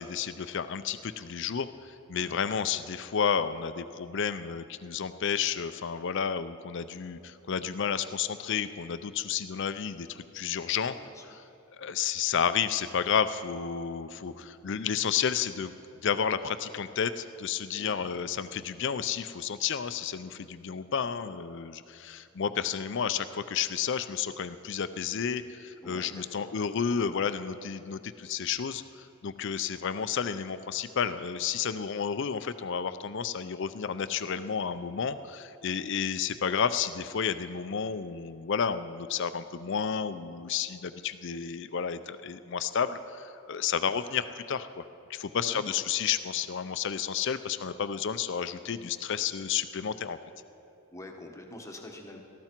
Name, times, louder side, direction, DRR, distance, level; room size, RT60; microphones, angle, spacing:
voice 1, 0.0-10.9 11.8-15.7 16.0-44.8 45.1-50.2, left 7 dB, 55° left, 12 dB, 0.5 m, -31 dB
voice 2, 10.8-11.3 17.8-18.1 25.8-26.5 43.7-43.9 45.5-45.8 50.9-52.2, left 1 dB, 15° left, 2 dB, 1.1 m, -46 dB
18.0 x 14.0 x 4.5 m, 2.7 s
head